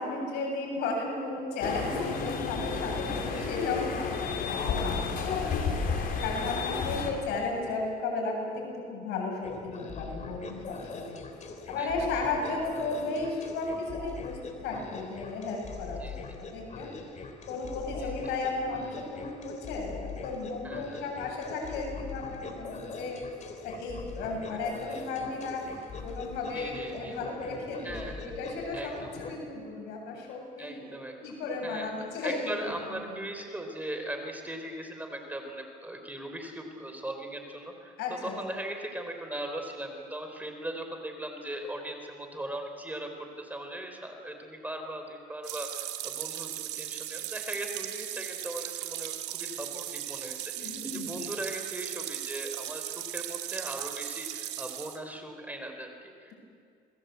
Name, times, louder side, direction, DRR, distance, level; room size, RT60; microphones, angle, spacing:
voice 1, 0.0-5.4 5.7-11.2 11.7-16.9 17.5-23.2 23.6-32.5 32.9-33.0 38.0-38.4 50.6-51.3, left 3 dB, 90° left, 0 dB, 8.0 m, -34 dB
sound 1, 1.6-7.1, left 5 dB, 60° left, 4.3 m, -31 dB
voice 2, 5.4-5.8 6.8-7.0 11.8-12.2 16.0-16.4 18.0-18.1 20.6-21.0 24.5-24.6 24.9-25.0 26.4-27.1 27.8-28.2 28.7-29.1 30.6-31.3 31.6-31.9 32.2-38.0 38.2-56.3, right 1 dB, 10° right, 4 dB, 4.2 m, -39 dB
sound 2, 9.4-29.3, left 4 dB, 45° left, 3.9 m, -42 dB
sound 3, 45.4-55.0, right 13 dB, 90° right, 2.1 m, -37 dB
27.5 x 21.0 x 8.3 m, 2.3 s
cardioid pair, 110°, 17 cm